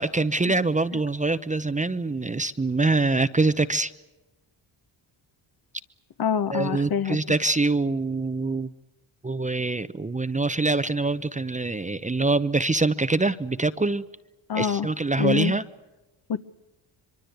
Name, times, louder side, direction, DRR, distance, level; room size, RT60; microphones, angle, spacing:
voice 1, 0.0-3.9 6.5-8.7 9.2-14.0 14.6-15.6, right 3 dB, 15° right, 12 dB, 0.9 m, -24 dB
voice 2, 6.2-7.2 14.5-14.9 15.2-15.5 16.3-16.4, left 7 dB, 50° left, 11 dB, 1.3 m, -25 dB
24.5 x 23.5 x 8.1 m, 1.0 s
cardioid pair, 75°, 47 cm